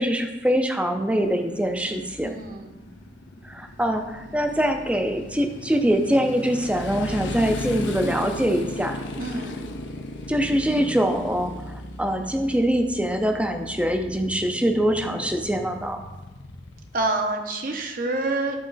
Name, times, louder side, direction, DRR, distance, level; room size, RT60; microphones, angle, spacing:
voice 1, 0.0-2.3 3.5-9.0 10.3-16.0, equal, 5° right, 5 dB, 0.5 m, -24 dB
Motorcycle, 1.2-17.0, left 1 dB, 85° left, 0.8 m, -37 dB
voice 2, 2.2-2.7 9.2-9.5 16.9-18.6, right 2 dB, 50° right, 4 dB, 0.8 m, -27 dB
11.0 x 4.1 x 4.0 m, 1.1 s
head